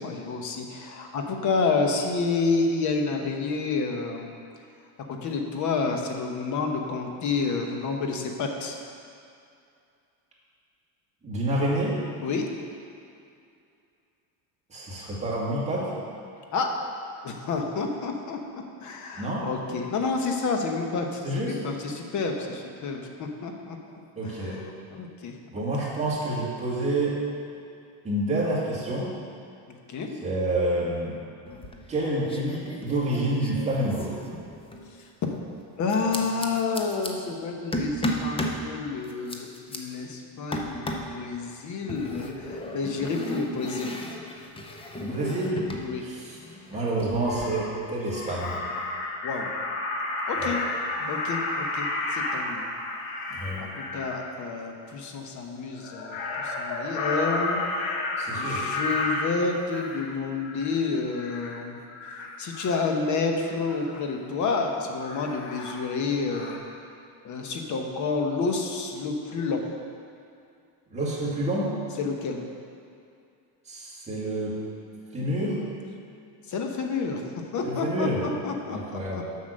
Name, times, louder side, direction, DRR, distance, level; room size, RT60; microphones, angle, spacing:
voice 1, 0.0-4.3 5.1-8.8 12.2-12.4 16.5-16.7 17.2-24.6 24.9-25.4 29.9-30.1 35.0-35.4 35.8-44.0 45.8-46.0 49.2-49.5 50.3-50.6 51.1-52.7 53.1-58.0 58.3-61.8 62.4-66.6 67.2-69.7 72.0-72.4 76.5-77.2 77.5-79.2, left 4 dB, 45° left, 3 dB, 1.0 m, -29 dB
voice 2, 11.2-11.9 14.7-15.9 19.2-19.4 21.2-21.6 24.2-24.6 25.5-27.2 28.0-29.1 30.2-31.2 31.9-34.1 45.0-45.6 46.0-46.3 46.7-48.6 50.4-50.5 53.3-53.6 58.2-58.6 70.9-71.7 73.7-74.6 75.1-75.6 77.6-78.2 78.7-79.2, right 1 dB, 15° right, -6 dB, 2.0 m, -28 dB
sound 1, 31.5-32.0 32.3-34.9 35.9-37.1 37.7-38.6 39.0-39.8 40.5-41.2 41.9-45.9 46.2-47.4, left 1 dB, 15° left, 0.6 m, -34 dB
Crow, 46.7-46.8 47.2-47.8 48.1-54.2 55.7-60.1 60.4-60.8 61.1-61.5 61.9-62.9 63.7-64.0 65.0-66.1 66.3-66.6, left 2 dB, 90° left, 1.4 m, -32 dB
7.6 x 5.8 x 6.5 m, 2.5 s
cardioid pair, 150°, 40 cm